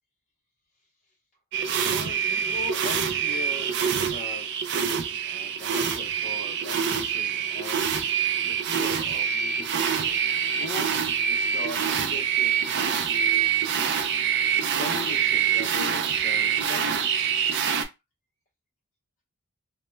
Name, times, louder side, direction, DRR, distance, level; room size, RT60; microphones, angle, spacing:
sound 1, 1.5-17.8, right 7 dB, 55° right, 0.3 m, -25 dB
voice 1, 1.8-4.5 5.2-12.5 12.8-14.0 14.7-17.3, left 2 dB, 35° left, 0.7 m, -40 dB
2.2 x 2.1 x 3.1 m
head